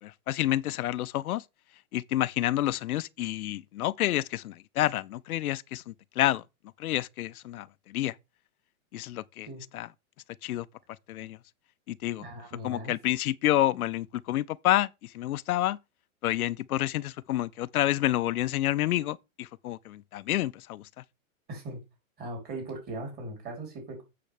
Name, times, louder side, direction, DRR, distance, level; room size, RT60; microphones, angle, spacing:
voice 1, 0.0-1.4 1.9-6.4 6.8-8.2 8.9-9.9 10.4-10.7 11.1-11.4 11.9-12.2 12.6-15.8 16.2-20.9, left 14 dB, 85° left, 0.6 m, -29 dB
voice 2, 12.2-12.9 21.5-21.8 22.2-24.0, right 2 dB, 20° right, 3.3 m, -39 dB
8.5 x 6.8 x 3.3 m
hypercardioid pair, 160°, 42 cm